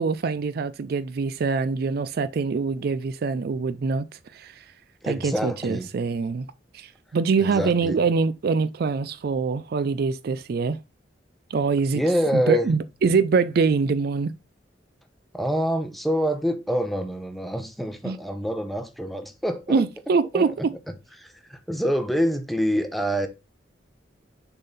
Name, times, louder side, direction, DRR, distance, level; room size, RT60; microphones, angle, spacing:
voice 1, 0.0-4.1 4.3-4.6 5.1-6.5 6.7-10.8 11.5-12.0 12.3-14.3 18.0-18.2 19.7-20.7, right 4 dB, 55° right, 0.4 m, -24 dB
voice 2, 5.0-5.9 7.4-8.0 11.9-12.7 15.3-19.8 20.3-20.7 21.2-23.3, equal, ahead, 0.8 m, -26 dB
6.7 x 3.8 x 4.0 m
head